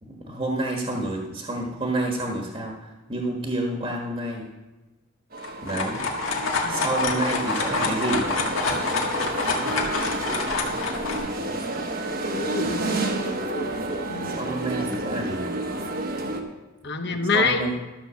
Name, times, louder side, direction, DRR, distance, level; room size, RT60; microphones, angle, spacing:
voice 1, 0.0-4.4 5.6-6.0 6.7-8.3 14.2-15.5 17.0-17.7, right 2 dB, 30° right, 0 dB, 1.4 m, -29 dB
sound 1, 5.3-16.4, right 2 dB, 45° right, 1.2 m, -30 dB
sound 2, 5.4-11.2, left 3 dB, 85° left, 1.9 m, -27 dB
voice 2, 12.3-13.0 13.3-13.7 14.1-14.4 16.8-17.6, left 4 dB, 60° left, 6 dB, 1.1 m, -27 dB
13.0 x 6.3 x 6.9 m, 1.1 s
head